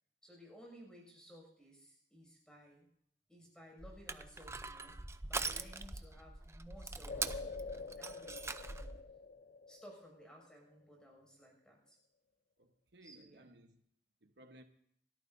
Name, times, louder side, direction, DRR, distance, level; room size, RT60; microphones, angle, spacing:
voice 1, 0.2-2.9 3.3-4.9 5.2-7.5 8.0-9.0 9.7-12.0 13.0-13.5, equal, 5° left, 6.3 m, -57 dB
Crushing, 3.8-9.0, right 4 dB, 15° right, 0.6 m, -43 dB
sound 1, 7.1-10.6, left 4 dB, 45° left, 0.6 m, -47 dB
voice 2, 12.6-13.8 14.2-14.6, right 1 dB, 70° right, 1.1 m, -60 dB
28.5 x 13.5 x 2.7 m
head